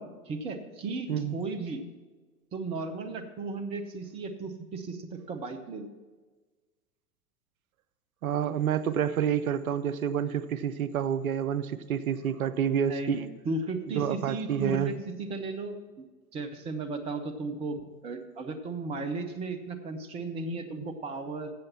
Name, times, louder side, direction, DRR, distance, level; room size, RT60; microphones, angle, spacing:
voice 1, 0.0-1.8 2.5-5.9 12.9-16.1 16.3-21.5, right 3 dB, 15° right, 7 dB, 0.6 m, -35 dB
voice 2, 8.2-13.3 13.9-15.0, right 8 dB, 60° right, 12 dB, 0.7 m, -28 dB
7.7 x 7.5 x 7.3 m, 1.3 s
figure-of-eight pair, 95°, 47 cm